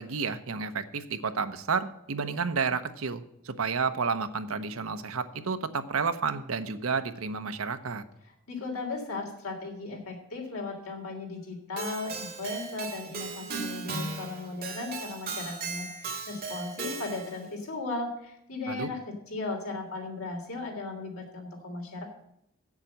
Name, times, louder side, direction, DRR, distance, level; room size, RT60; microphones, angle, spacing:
voice 1, 0.0-8.0 18.7-18.9, right 5 dB, 80° right, 10 dB, 0.8 m, -31 dB
voice 2, 8.2-19.0 19.3-22.0, left 3 dB, 85° left, 0 dB, 3.4 m, -36 dB
Keyboard (musical), 11.8-17.4, right 4 dB, 45° right, 1.9 m, -37 dB
8.0 x 7.3 x 8.6 m, 0.78 s
head